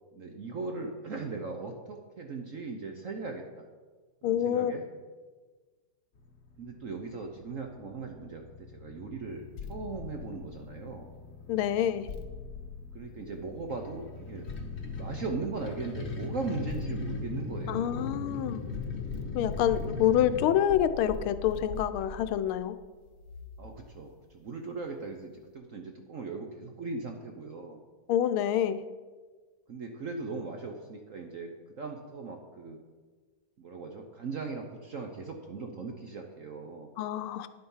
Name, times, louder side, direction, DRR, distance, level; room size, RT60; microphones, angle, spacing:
voice 1, 0.1-3.6 4.2-4.8 6.6-11.1 12.9-14.5 15.0-18.2 23.6-27.8 29.7-31.5 31.8-32.8 33.6-36.9, right 4 dB, 55° right, 3 dB, 0.9 m, -39 dB
voice 2, 4.2-4.7 11.5-12.1 17.7-18.6 19.3-22.7 28.1-28.8 37.0-37.5, left 10 dB, 85° left, 12 dB, 1.5 m, -27 dB
sound 1, 6.1-20.5, left 3 dB, 45° left, 1.0 m, -40 dB
sound 2, 9.6-11.1 12.1-13.7 14.5-15.8 16.7-18.3 18.7-24.0, left 5 dB, 60° left, 1.4 m, -43 dB
10.5 x 7.8 x 5.6 m, 1.4 s
omnidirectional pair, 2.3 m